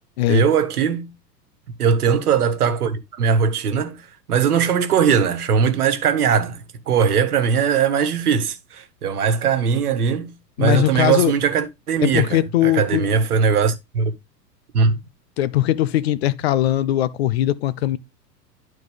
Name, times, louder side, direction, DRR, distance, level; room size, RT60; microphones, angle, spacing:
voice 1, 0.3-1.1 1.8-4.0 4.3-10.3 10.6-14.1 14.7-15.0, right 6 dB, 65° right, 1.4 m, -20 dB
voice 2, 10.6-11.3 12.0-13.1 15.4-18.0, left 14 dB, 40° left, 0.5 m, -20 dB
11.5 x 4.2 x 3.3 m
figure-of-eight pair, 95°, 49 cm